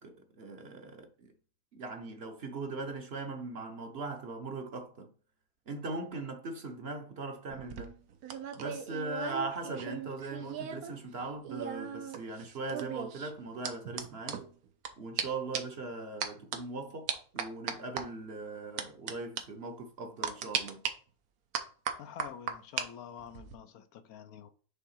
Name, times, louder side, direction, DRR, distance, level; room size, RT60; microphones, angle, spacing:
voice 1, 0.0-1.3 1.7-5.1 5.7-8.0 8.5-14.4 15.0-17.1 17.3-20.8, right 3 dB, 50° right, 1.0 m, -40 dB
sound 1, 7.5-10.9 11.2-14.9 15.2-15.3 15.5-15.8 16.2-16.6 17.1-18.0 18.8-19.1 19.4-19.5 20.2-20.9 21.5-22.9 23.2-23.5, right 7 dB, 80° right, 1.3 m, -37 dB
voice 2, 22.0-24.5, left 8 dB, 75° left, 1.1 m, -47 dB
5.6 x 3.6 x 5.6 m
omnidirectional pair, 1.6 m